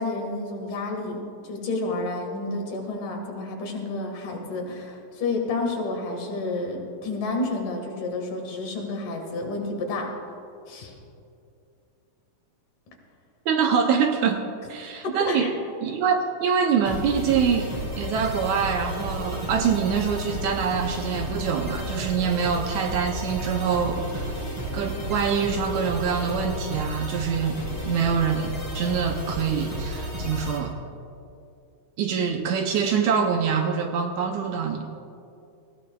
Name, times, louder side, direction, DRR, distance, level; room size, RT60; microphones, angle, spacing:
voice 1, 0.0-10.1 10.7-10.9 14.8-15.5, left 2 dB, 70° left, 1 dB, 3.2 m, -30 dB
voice 2, 13.5-15.5 15.8-24.4 24.7-27.6 27.9-30.7 32.0-34.9, right 6 dB, 75° right, 4 dB, 1.8 m, -25 dB
sound 1, 16.9-30.6, equal, 10° right, 2.7 m, -32 dB
19.5 x 15.5 x 2.3 m, 2.6 s
omnidirectional pair, 3.9 m